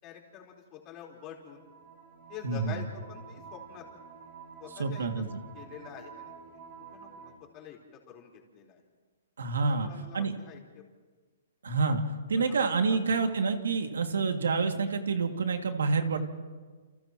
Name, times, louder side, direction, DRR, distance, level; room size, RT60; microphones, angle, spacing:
voice 1, 0.0-1.6 2.3-3.9 4.6-5.2 5.5-6.3 6.9-7.1 7.4-8.8 9.6-10.8 12.4-12.6 12.9-13.3, left 9 dB, 25° left, -1 dB, 4.3 m, -47 dB
sound 1, 1.5-7.3, right 6 dB, 45° right, 5.5 m, -49 dB
voice 2, 4.8-5.3 9.4-9.9 10.1-10.3 11.6-12.0 12.3-16.2, right 4 dB, 90° right, 4 dB, 2.4 m, -28 dB
30.0 x 29.5 x 3.1 m, 1.4 s
hypercardioid pair, 150°, 0 cm